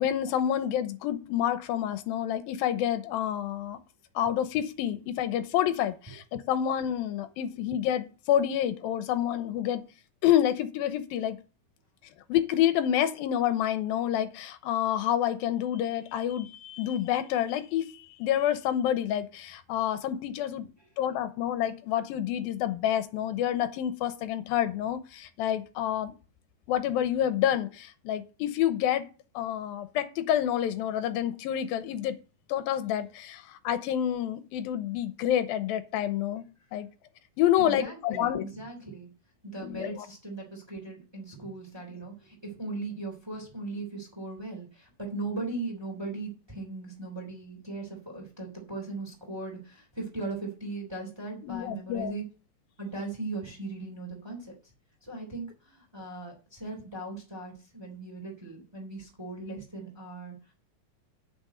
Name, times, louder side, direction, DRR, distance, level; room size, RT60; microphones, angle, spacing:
voice 1, 0.0-3.8 4.2-9.8 10.2-11.4 12.3-20.7 21.0-26.1 26.7-29.1 29.4-32.2 32.5-36.4 36.7-36.9 37.4-38.4 39.6-40.1 51.4-52.1, left 11 dB, 80° left, 11 dB, 2.7 m, -28 dB
voice 2, 37.6-39.1 39.4-52.2 52.8-54.5 55.0-60.3, right 3 dB, 5° right, 0 dB, 2.9 m, -38 dB
8.8 x 6.0 x 7.8 m, 0.35 s
omnidirectional pair, 4.1 m